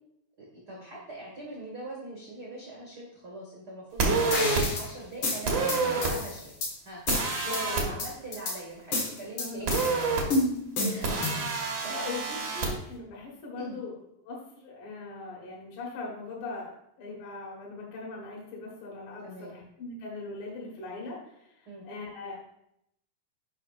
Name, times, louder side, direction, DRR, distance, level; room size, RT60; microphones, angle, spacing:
voice 1, 0.4-6.5 6.8-7.0 7.4-9.7 10.2-10.3 10.9-11.3 11.8-12.5 13.6-13.8 19.2-19.5 21.6-21.8, right 2 dB, 40° right, -5 dB, 1.7 m, -42 dB
sound 1, 4.0-4.6 5.5-6.1 7.1-7.8 9.7-10.2 11.0-12.7, right 3 dB, 70° right, 0.9 m, -27 dB
sound 2, 4.3-4.9 5.2-6.7 7.1-7.6 8.0-8.6 8.9-9.9 10.3-11.5, left 2 dB, 50° left, 1.8 m, -30 dB
voice 2, 7.4-8.0 9.3-9.7 10.7-11.3 11.9-12.2 12.5-14.0 14.2-22.5, left 3 dB, 70° left, -3 dB, 3.1 m, -40 dB
10.5 x 5.7 x 2.5 m, 0.77 s
omnidirectional pair, 4.0 m